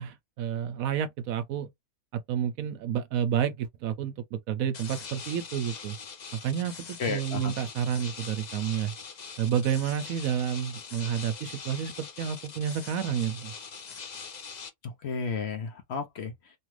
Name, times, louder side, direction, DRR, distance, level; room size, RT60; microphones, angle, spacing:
voice 1, 0.0-1.7 2.3-6.0 6.4-8.9 9.4-13.5, right 9 dB, 70° right, 0.9 m, -30 dB
sound 1, 4.7-14.7, left 5 dB, 90° left, 0.3 m, -42 dB
voice 2, 7.0-7.5 14.8-16.5, left 5 dB, 55° left, 0.8 m, -33 dB
3.0 x 2.4 x 3.1 m
omnidirectional pair, 1.6 m